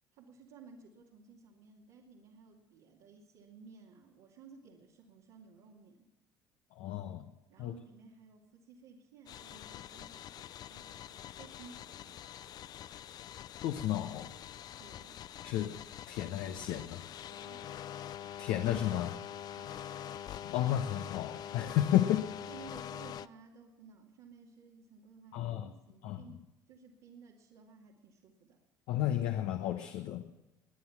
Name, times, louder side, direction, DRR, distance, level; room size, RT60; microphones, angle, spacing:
voice 1, 0.1-6.1 7.5-12.2 14.8-15.2 17.2-17.9 19.6-19.9 22.5-25.6 25.9-26.4 26.7-28.6, right 5 dB, 80° right, -5 dB, 2.5 m, -56 dB
voice 2, 6.7-7.3 7.6-7.8 13.6-14.3 15.4-15.8 16.1-17.2 18.4-19.2 20.3-22.3 25.3-25.7 26.0-26.2 28.9-30.2, left 12 dB, 75° left, 6 dB, 1.1 m, -32 dB
sound 1, 9.3-23.3, left 10 dB, 50° left, 0.5 m, -45 dB
21.0 x 9.8 x 5.9 m, 0.99 s
supercardioid pair, 90°, 8 cm